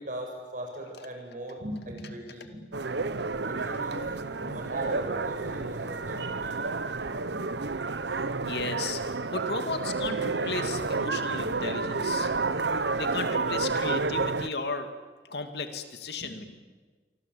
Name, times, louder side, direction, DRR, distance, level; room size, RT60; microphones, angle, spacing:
voice 1, 0.0-2.6 3.5-4.1 4.4-7.0 7.3-7.4, right 1 dB, 45° right, 2 dB, 7.9 m, -39 dB
sound 1, 2.7-14.5, right 3 dB, 80° right, 1.0 m, -30 dB
voice 2, 8.4-12.3 13.0-14.9 15.3-16.4, left 3 dB, 65° left, 7 dB, 2.4 m, -35 dB
28.5 x 24.0 x 8.7 m, 1.4 s
head